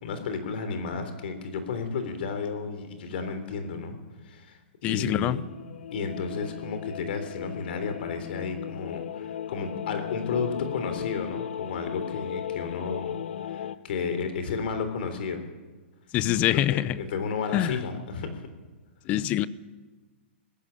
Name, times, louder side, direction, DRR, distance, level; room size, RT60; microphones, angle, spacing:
voice 1, 0.0-4.0 4.2-5.4 5.9-15.5 16.7-18.4, left 5 dB, 55° left, 3.5 m, -32 dB
voice 2, 4.8-5.4 16.1-17.0 17.5-17.8 19.1-19.4, left 13 dB, 20° left, 0.6 m, -24 dB
sound 1, 5.4-13.8, left 10 dB, 70° left, 1.0 m, -36 dB
19.5 x 15.0 x 10.0 m
hypercardioid pair, 165°, 6 cm